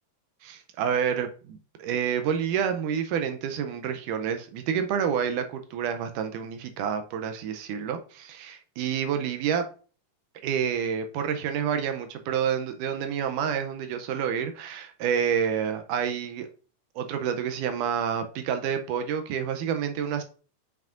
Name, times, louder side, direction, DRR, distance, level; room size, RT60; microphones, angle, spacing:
voice 1, 0.4-9.6 10.4-16.5 17.0-20.2, right 8 dB, 80° right, 2.0 m, -28 dB
7.4 x 5.7 x 2.5 m
omnidirectional pair, 4.0 m